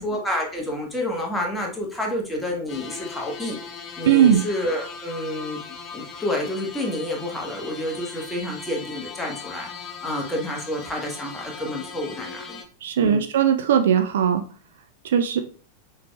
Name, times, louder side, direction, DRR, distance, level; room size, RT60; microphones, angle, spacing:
voice 1, 0.0-3.6 4.0-5.6 5.9-9.7 10.0-12.6 13.0-13.2, left 1 dB, 5° left, -1 dB, 1.2 m, -29 dB
sound 1, 2.7-12.6, left 5 dB, 30° left, 0.5 m, -39 dB
voice 2, 4.1-4.4 12.8-14.4 15.0-15.4, right 9 dB, 60° right, 7 dB, 0.3 m, -19 dB
5.7 x 3.2 x 2.3 m, 0.42 s
figure-of-eight pair, 90°, 0 cm